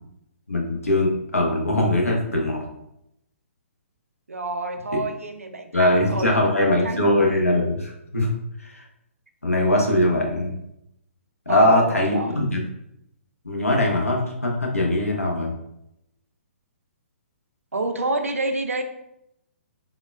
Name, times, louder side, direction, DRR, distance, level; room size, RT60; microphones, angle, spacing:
voice 1, 0.5-2.6 5.7-8.3 8.6-8.8 9.4-10.5 11.5-12.6 13.4-15.5, left 1 dB, 85° left, -1 dB, 0.7 m, -21 dB
voice 2, 4.3-7.3 11.5-12.3 17.7-18.8, right 2 dB, 80° right, 6 dB, 0.4 m, -28 dB
3.6 x 2.2 x 2.3 m, 0.81 s
figure-of-eight pair, 125°, 7 cm